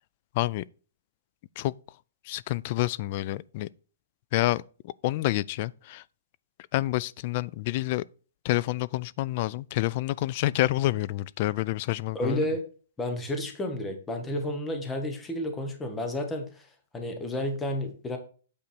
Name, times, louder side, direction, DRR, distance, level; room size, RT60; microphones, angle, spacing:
voice 1, 0.3-0.7 1.6-1.7 2.2-3.7 4.3-6.0 6.7-8.1 8.4-12.5, left 17 dB, 35° left, 0.3 m, -28 dB
voice 2, 12.1-12.6 13.0-16.7 16.9-18.2, left 1 dB, 10° left, 1.3 m, -31 dB
8.6 x 5.1 x 4.5 m
hypercardioid pair, 165°, 0 cm